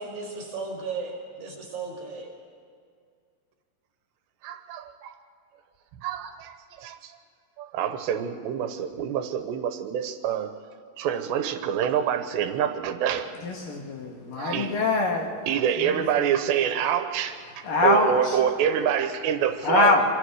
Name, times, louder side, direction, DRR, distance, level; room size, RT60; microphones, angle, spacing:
voice 1, 0.0-2.3, right 4 dB, 35° right, 1 dB, 6.4 m, -35 dB
voice 2, 4.4-5.2 6.0-7.2 7.6-10.5 11.0-13.3 14.3-14.8 15.5-20.0, right 9 dB, 85° right, 8 dB, 3.2 m, -26 dB
voice 3, 13.4-15.3 17.7-18.1 19.6-20.0, left 3 dB, 60° left, 1 dB, 3.1 m, -23 dB
27.0 x 25.5 x 4.8 m, 2.1 s
omnidirectional pair, 4.9 m